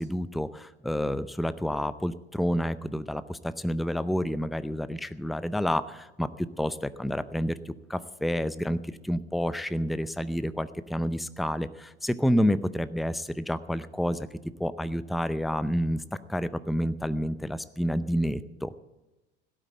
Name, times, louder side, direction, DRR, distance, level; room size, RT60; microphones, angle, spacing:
voice 1, 0.0-16.0 16.3-18.7, equal, ahead, 15 dB, 0.6 m, -29 dB
17.0 x 9.3 x 7.6 m, 1.0 s
figure-of-eight pair, 70°, 33 cm